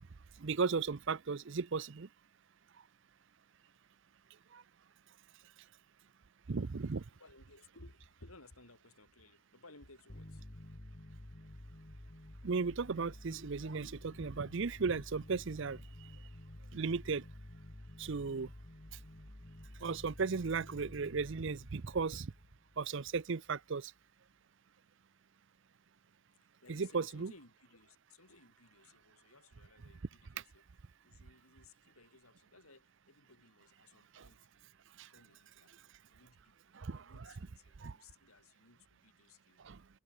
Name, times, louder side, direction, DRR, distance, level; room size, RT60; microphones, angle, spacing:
voice 1, 0.4-2.1 4.5-4.6 6.5-7.0 12.4-16.1 16.7-17.2 18.0-18.5 19.8-22.3 22.8-23.9 26.7-27.3 34.1-34.3 35.0-35.1 36.7-37.3 37.8-38.0 39.6-39.8, right 4 dB, 55° right, 0.6 m, -36 dB
voice 2, 7.1-10.5 26.3-30.6 31.0-34.7 35.0-35.8 36.1-39.7, left 2 dB, 75° left, 6.8 m, -61 dB
sound 1, 10.1-23.3, left 1 dB, 35° left, 1.8 m, -52 dB
head